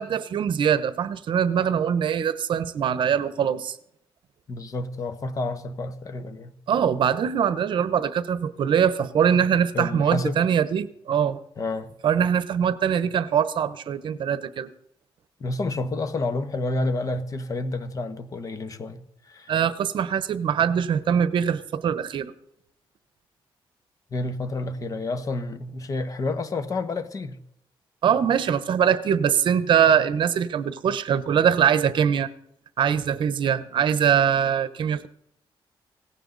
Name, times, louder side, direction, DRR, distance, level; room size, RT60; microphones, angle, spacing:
voice 1, 0.0-3.8 6.7-11.4 12.0-14.7 19.5-22.3 28.0-32.3 32.8-35.1, right 8 dB, 60° right, 1.0 m, -22 dB
voice 2, 4.5-6.5 9.7-10.4 11.6-11.9 15.4-19.5 24.1-27.4, left 2 dB, 40° left, 1.3 m, -29 dB
17.5 x 16.0 x 4.0 m
wide cardioid pair, 145°, 9 cm